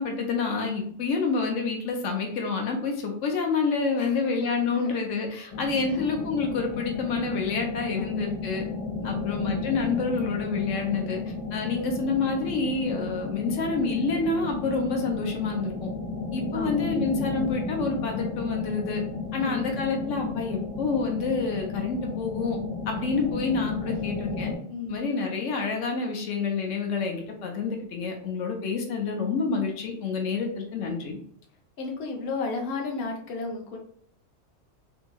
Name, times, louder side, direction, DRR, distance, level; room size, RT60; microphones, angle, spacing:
voice 1, 0.0-8.6 9.0-15.9 16.3-19.0 19.3-22.6 22.9-24.5 24.9-31.2, left 4 dB, 90° left, 2 dB, 1.0 m, -28 dB
voice 2, 4.0-5.2 5.9-6.0 8.0-8.3 9.0-9.4 16.5-16.9 19.4-20.0 23.6-23.8 24.7-25.1 31.8-33.8, left 3 dB, 60° left, 1 dB, 0.8 m, -34 dB
sound 1, 5.5-24.6, left 3 dB, 35° left, 1.2 m, -33 dB
2.8 x 2.6 x 2.2 m, 0.63 s
omnidirectional pair, 1.3 m